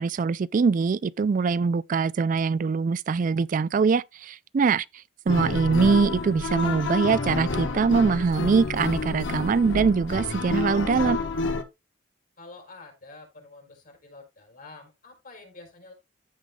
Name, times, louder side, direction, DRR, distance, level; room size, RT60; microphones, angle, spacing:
voice 1, 0.0-4.9 5.3-11.2, right 5 dB, 45° right, 0.3 m, -23 dB
sound 1, 5.3-11.6, left 3 dB, 80° left, 1.2 m, -29 dB
voice 2, 12.4-15.9, left 3 dB, 50° left, 4.9 m, -47 dB
15.0 x 5.4 x 2.3 m
head